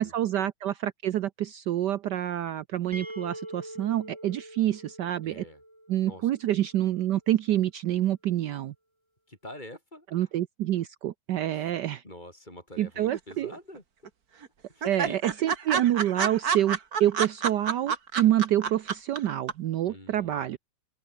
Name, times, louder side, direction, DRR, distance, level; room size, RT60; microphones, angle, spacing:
voice 1, 0.0-5.4 5.9-8.7 10.1-12.0 12.8-13.5 14.8-20.6, right 12 dB, 70° right, 1.3 m, -27 dB
sound 1, 2.9-6.6, right 1 dB, 15° right, 6.4 m, -44 dB
voice 2, 5.2-5.6 6.0-6.2 9.3-10.1 11.5-11.6 12.0-13.8 14.8-15.2 19.9-20.5, left 1 dB, 20° left, 5.7 m, -45 dB
sound 2, 13.1-13.8 14.1-14.2 14.4-14.5 14.8-19.2 19.5-19.6, right 6 dB, 50° right, 2.2 m, -28 dB
open air
omnidirectional pair, 2.1 m